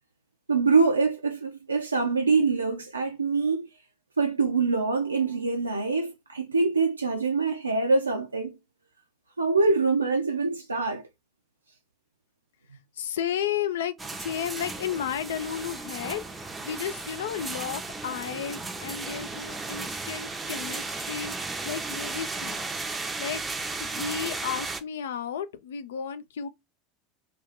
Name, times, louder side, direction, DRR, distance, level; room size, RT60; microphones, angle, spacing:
voice 1, 0.5-3.7 4.2-8.6 9.4-11.0, right 4 dB, 85° right, 0.3 m, -24 dB
voice 2, 13.0-22.6 23.2-23.4 23.8-26.5, left 8 dB, 70° left, 0.4 m, -33 dB
sound 1, 14.0-24.8, right 3 dB, 15° right, 0.5 m, -35 dB
2.5 x 2.4 x 3.8 m
figure-of-eight pair, 80°, 0 cm